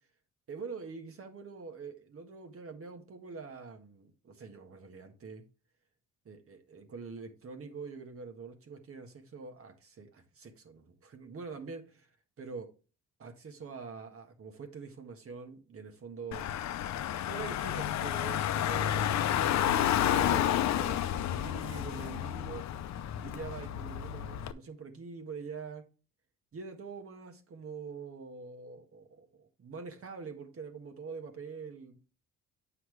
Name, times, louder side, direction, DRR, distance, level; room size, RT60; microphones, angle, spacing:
voice 1, 0.5-5.4 6.2-12.1 12.4-12.7 13.2-16.5 17.1-22.7 23.1-25.8 26.5-32.0, right 5 dB, 50° right, 1.5 m, -45 dB
Car / Engine, 16.3-24.5, left 11 dB, 65° left, 0.6 m, -31 dB
8.0 x 5.7 x 3.2 m
cardioid pair, 90°, 30 cm